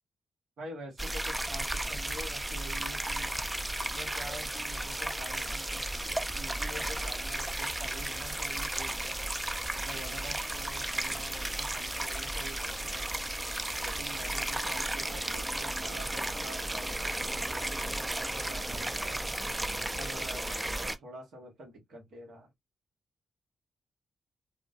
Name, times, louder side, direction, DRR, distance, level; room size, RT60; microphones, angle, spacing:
voice 1, 0.6-3.3 3.9-9.2 9.7-13.1 13.8-19.3 19.9-22.5, right 1 dB, 75° right, 1.1 m, -47 dB
sound 1, 1.0-21.0, right 1 dB, 20° right, 0.4 m, -34 dB
2.4 x 2.1 x 2.4 m
supercardioid pair, 40°, 0 cm